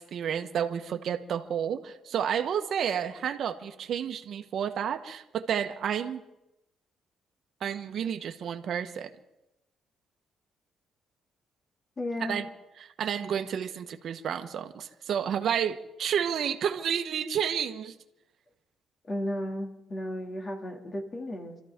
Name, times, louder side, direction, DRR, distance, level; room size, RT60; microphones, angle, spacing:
voice 1, 0.0-6.2 7.6-9.1 12.2-12.4 13.0-17.9, right 8 dB, 65° right, 7 dB, 1.2 m, -30 dB
voice 2, 12.0-12.4 19.1-21.6, left 1 dB, 35° left, 3 dB, 2.5 m, -34 dB
27.5 x 13.5 x 3.7 m, 0.90 s
cardioid pair, 90°, 0 cm